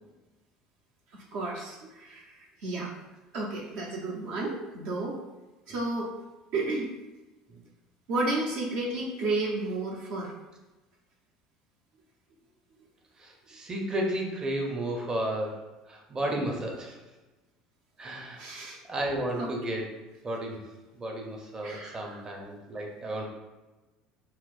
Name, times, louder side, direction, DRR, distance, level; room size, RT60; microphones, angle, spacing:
voice 1, 1.1-2.9 3.3-5.2 5.7-6.1 6.5-6.9 8.1-10.3 16.4-16.5 18.4-18.8 19.4-19.5 21.6-22.2, right 2 dB, 65° right, -2 dB, 0.7 m, -32 dB
voice 2, 13.2-15.5 15.9-17.0 18.0-18.5 18.9-19.9 20.2-20.6 20.9-23.3, right 1 dB, 30° right, 0 dB, 0.7 m, -33 dB
4.3 x 2.0 x 2.4 m, 1.1 s
hypercardioid pair, 75°, 3 cm